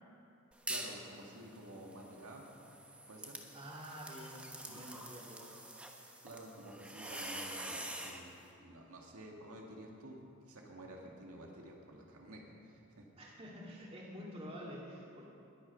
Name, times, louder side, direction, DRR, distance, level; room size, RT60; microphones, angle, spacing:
sound 1, 0.5-1.0 1.4-8.2, right 1 dB, 5° right, 0.9 m, -46 dB
voice 1, 0.7-2.7 3.1-3.4 4.7-4.9 6.2-10.2 10.5-13.0, right 1 dB, 80° right, -1 dB, 1.9 m, -51 dB
voice 2, 3.5-5.5 13.2-15.3, equal, 25° right, -4 dB, 2.4 m, -48 dB
20.5 x 8.7 x 5.7 m, 2.8 s
head